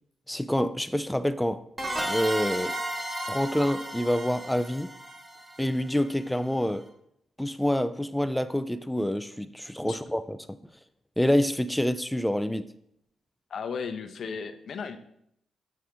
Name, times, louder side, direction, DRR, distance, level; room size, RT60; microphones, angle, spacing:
voice 1, 0.3-1.6 2.0-2.7 3.2-4.9 5.6-6.8 7.4-10.6 11.2-12.7, equal, 5° left, 0.4 m, -27 dB
sound 1, 1.8-6.3, right 1 dB, 20° right, 1.4 m, -34 dB
voice 2, 13.5-15.0, left 5 dB, 60° left, 0.7 m, -35 dB
7.8 x 4.7 x 3.5 m
hypercardioid pair, 40°, 0 cm